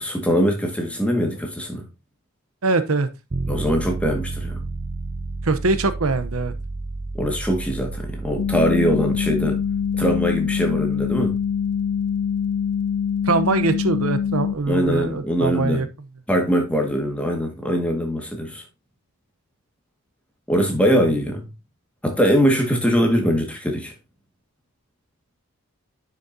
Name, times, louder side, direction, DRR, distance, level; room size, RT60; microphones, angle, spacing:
voice 1, 0.0-1.8 3.5-4.6 7.1-9.6 10.0-11.4 14.7-15.9 16.3-18.6 20.5-21.5 22.0-23.9, equal, 5° left, 1.9 m, -22 dB
voice 2, 2.6-3.1 5.4-6.5 13.2-15.9, right 3 dB, 80° right, 0.9 m, -22 dB
sound 1, 3.3-15.2, right 3 dB, 40° right, 0.6 m, -33 dB
sound 2, 8.4-14.6, left 7 dB, 55° left, 0.4 m, -24 dB
10.5 x 6.4 x 2.8 m
head